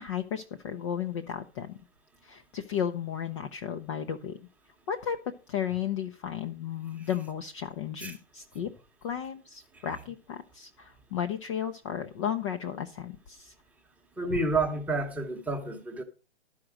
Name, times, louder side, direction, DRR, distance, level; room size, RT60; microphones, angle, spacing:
voice 1, 0.0-1.8 2.2-4.4 4.9-5.2 5.5-8.7 9.0-13.5 14.3-14.4, left 8 dB, 25° left, 0.5 m, -34 dB
voice 2, 14.2-16.0, right 2 dB, 5° right, 1.0 m, -30 dB
12.5 x 5.0 x 6.3 m
figure-of-eight pair, 125°, 34 cm